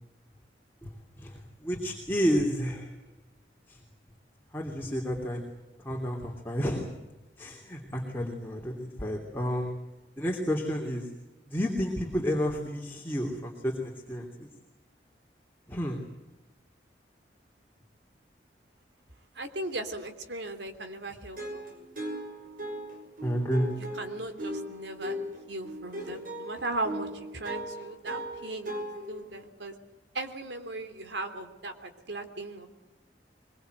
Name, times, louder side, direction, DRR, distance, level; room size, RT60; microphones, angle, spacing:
voice 1, 1.2-2.9 3.7-3.8 4.5-5.5 5.8-6.9 7.4-9.8 10.2-11.1 11.5-14.5 15.7-16.0 23.2-23.7, equal, 10° left, -1 dB, 2.9 m, -31 dB
voice 2, 19.3-21.7 23.9-25.1 25.5-28.8 29.1-29.7 30.1-32.7, right 2 dB, 80° right, 7 dB, 3.2 m, -37 dB
sound 1, 21.4-29.5, equal, 50° right, 5.8 m, -38 dB
23.0 x 22.5 x 8.0 m, 1.0 s
head